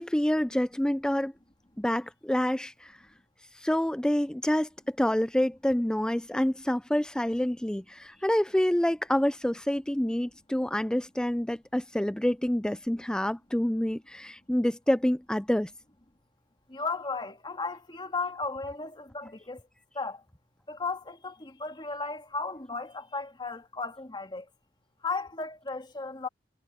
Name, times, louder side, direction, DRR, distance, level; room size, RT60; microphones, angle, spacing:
voice 1, 0.0-1.3 1.8-3.0 3.5-15.7, left 1 dB, 5° left, 0.4 m, -27 dB
voice 2, 16.7-19.6 20.0-20.2 20.7-24.4 25.0-26.3, left 4 dB, 25° left, 2.3 m, -35 dB
head